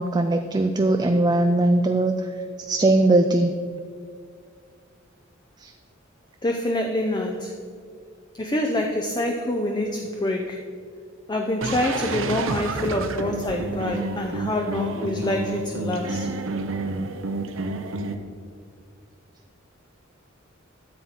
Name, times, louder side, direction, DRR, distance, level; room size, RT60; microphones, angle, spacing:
voice 1, 0.0-2.1 2.6-3.5 5.6-5.7, right 2 dB, 20° right, 6 dB, 0.4 m, -20 dB
voice 2, 6.4-7.6 8.3-10.7 11.3-16.3, left 1 dB, 20° left, 3 dB, 0.6 m, -26 dB
sound 1, 11.6-18.1, right 2 dB, 70° right, 0.8 m, -29 dB
13.0 x 7.4 x 4.4 m, 2.1 s
head